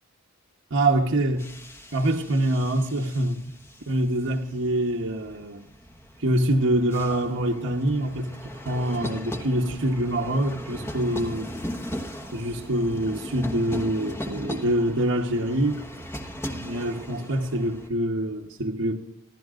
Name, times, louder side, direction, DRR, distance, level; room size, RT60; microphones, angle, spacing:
voice 1, 0.7-1.5 1.9-3.4 3.9-5.7 6.2-11.5 12.3-15.8 16.5-19.0, right 1 dB, 60° right, 0 dB, 1.1 m, -25 dB
sound 1, 0.9-17.9, equal, 10° left, 1.1 m, -38 dB
26.0 x 12.5 x 2.5 m, 0.78 s
head